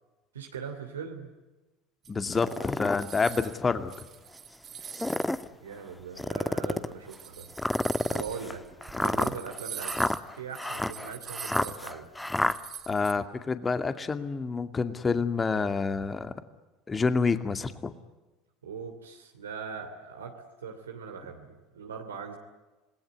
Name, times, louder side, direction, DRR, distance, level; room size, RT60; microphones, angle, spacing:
voice 1, 0.3-1.3 5.6-7.5 8.1-8.6 8.9-12.1 18.6-20.3 20.6-22.4, right 6 dB, 85° right, 3 dB, 2.8 m, -40 dB
sound 1, 2.0-3.6 3.9-5.4 6.0-6.1 6.9-13.1, right 8 dB, 40° right, 3.4 m, -43 dB
voice 2, 2.1-4.1 12.9-16.3 16.9-17.9, left 4 dB, 25° left, 9 dB, 2.3 m, -28 dB
sound 2, 2.3-3.0 3.7-3.8 4.8-5.5 6.2-6.9 7.6-12.6, left 1 dB, 10° left, 1.3 m, -29 dB
27.5 x 20.5 x 9.6 m, 1.1 s
hypercardioid pair, 70°, 0 cm